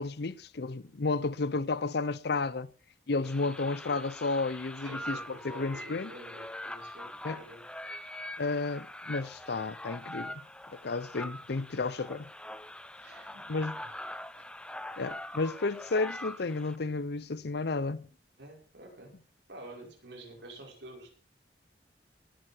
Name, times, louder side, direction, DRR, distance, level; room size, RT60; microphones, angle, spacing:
voice 1, 0.0-2.7 3.1-6.1 7.2-7.4 8.4-10.4 10.8-12.3 13.5-13.8 15.0-18.1, left 3 dB, 65° left, 0.7 m, -32 dB
sound 1, 3.2-16.8, left 1 dB, 5° left, 0.7 m, -43 dB
voice 2, 4.8-7.6 13.0-13.9 18.4-19.2 19.5-21.1, right 1 dB, 85° right, 5.8 m, -49 dB
20.0 x 9.5 x 4.5 m
head